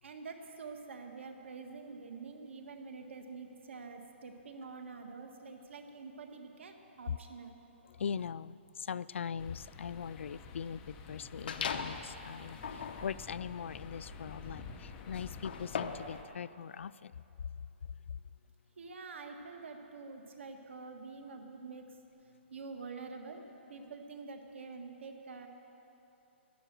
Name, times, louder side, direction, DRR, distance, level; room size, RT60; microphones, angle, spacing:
voice 1, 0.0-7.5 18.8-22.0 22.5-23.4 23.7-25.5, right 4 dB, 70° right, 4 dB, 1.7 m, -47 dB
voice 2, 7.9-17.1, left 7 dB, 75° left, 18 dB, 0.3 m, -41 dB
sound 1, 9.4-16.2, left 5 dB, 15° left, 0.6 m, -50 dB
sound 2, 11.5-12.1 12.5-16.2, left 6 dB, 50° left, 0.8 m, -40 dB
12.5 x 11.5 x 7.7 m, 3.0 s
hypercardioid pair, 175°, 7 cm